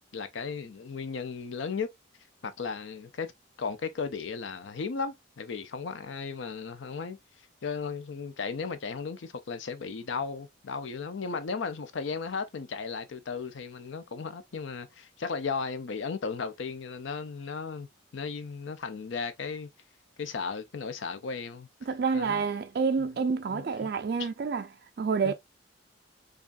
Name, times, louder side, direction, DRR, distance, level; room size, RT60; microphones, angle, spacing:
voice 1, 0.1-1.9 2.4-3.3 3.6-7.2 7.6-17.9 18.1-19.7 20.2-21.7 22.1-22.4 23.5-23.9 24.2-24.3 25.2-25.3, left 5 dB, 70° left, 0.5 m, -35 dB
voice 2, 21.9-24.7 25.0-25.3, right 5 dB, 55° right, 0.3 m, -28 dB
4.8 x 2.3 x 2.5 m
head